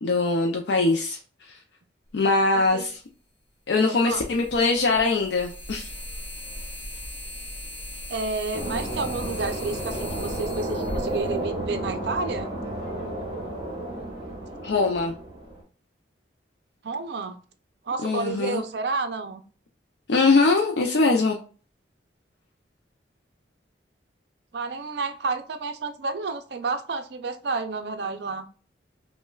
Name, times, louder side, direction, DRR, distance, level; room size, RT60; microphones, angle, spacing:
voice 1, 0.0-1.6 2.1-3.0 3.7-5.9 14.6-15.2 18.0-18.6 20.1-21.4, left 3 dB, 70° left, 2 dB, 0.4 m, -22 dB
sound 1, 2.7-2.8 4.1-12.0, equal, 30° left, 1.0 m, -38 dB
voice 2, 3.9-4.2 8.1-12.5 16.8-17.4 17.9-19.4 24.5-28.5, right 3 dB, 65° right, 8 dB, 0.5 m, -30 dB
sound 2, 8.5-15.6, right 1 dB, 30° right, 1.7 m, -32 dB
5.4 x 2.2 x 2.2 m, 0.40 s
head